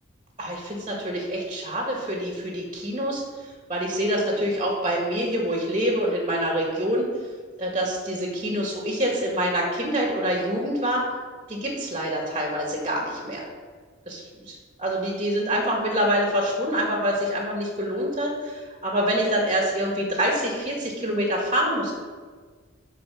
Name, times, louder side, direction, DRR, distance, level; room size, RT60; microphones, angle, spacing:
voice 1, 0.4-7.1 7.6-11.0 11.5-13.4 14.1-21.9, equal, 30° right, -1 dB, 1.9 m, -26 dB
11.5 x 4.6 x 6.4 m, 1.5 s
head